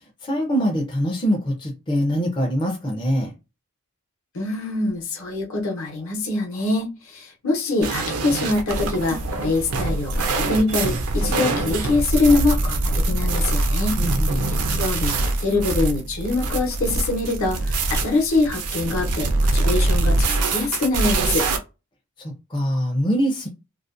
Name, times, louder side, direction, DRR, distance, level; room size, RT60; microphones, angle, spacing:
voice 1, 0.2-3.3 14.0-14.5 22.2-23.5, equal, 20° left, 0.4 m, -23 dB
voice 2, 4.3-14.0 14.7-21.5, left 2 dB, 65° left, 0.8 m, -24 dB
sound 1, 7.8-21.6, right 2 dB, 80° right, 0.5 m, -23 dB
2.4 x 2.1 x 2.4 m
head